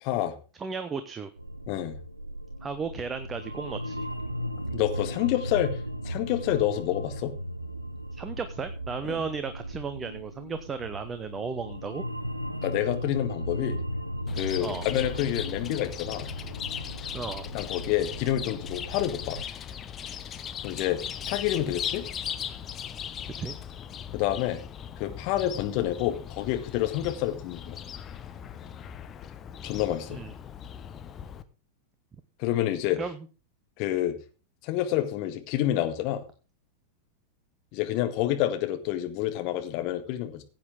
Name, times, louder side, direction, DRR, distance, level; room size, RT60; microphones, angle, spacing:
voice 1, 0.0-0.3 1.7-2.0 4.7-5.8 6.0-7.3 9.1-9.2 12.6-13.8 14.4-16.3 17.5-19.4 20.6-21.0 21.3-22.1 24.1-24.6 25.0-27.8 29.6-30.2 32.4-33.0 33.8-34.2 34.6-36.2 37.7-40.4, left 13 dB, 45° left, 7 dB, 1.9 m, -28 dB
voice 2, 0.6-1.3 2.6-4.1 8.1-12.0 14.6-14.9 17.1-17.5 23.4-23.5 30.1-30.3 33.0-33.3, right 5 dB, 20° right, 10 dB, 0.9 m, -34 dB
sound 1, 1.4-19.4, equal, 90° right, 0.7 m, -36 dB
Chirp tweet, 14.3-31.4, left 8 dB, 25° left, 1.0 m, -38 dB
16.0 x 8.5 x 3.7 m, 0.35 s
figure-of-eight pair, 90°, 0 cm